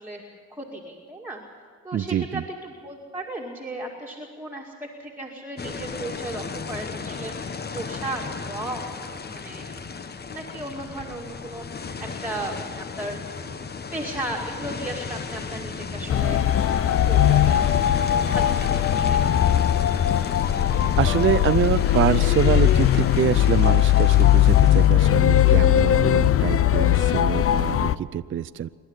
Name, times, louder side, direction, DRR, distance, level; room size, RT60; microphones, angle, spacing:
voice 1, 0.0-1.4 1.8-9.7 10.3-13.2 13.9-17.6 18.1-19.5, right 1 dB, 5° right, -2 dB, 2.2 m, -36 dB
voice 2, 1.9-2.4 21.0-28.7, right 10 dB, 40° right, 13 dB, 0.5 m, -25 dB
sound 1, 5.6-24.9, left 5 dB, 35° left, 1.0 m, -34 dB
sound 2, 16.1-28.0, left 12 dB, 50° left, 0.6 m, -19 dB
27.0 x 12.0 x 8.1 m, 2.2 s
cardioid pair, 90°, 30 cm